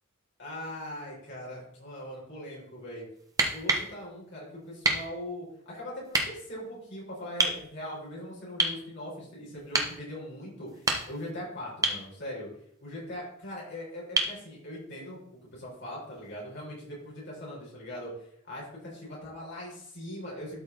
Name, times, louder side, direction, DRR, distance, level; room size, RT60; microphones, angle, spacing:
voice 1, 0.4-3.0 3.5-12.5 12.8-15.2 15.5-20.6, left 1 dB, 55° left, -5 dB, 4.3 m, -41 dB
sound 1, 3.3-3.9 4.8-5.1 6.1-6.3 7.4-7.6 8.6-8.8 9.7-9.9 10.7-11.3 11.8-12.0 14.2-14.4 16.2-16.3, right 2 dB, 15° right, 1.2 m, -27 dB
12.5 x 5.0 x 4.0 m, 0.69 s
head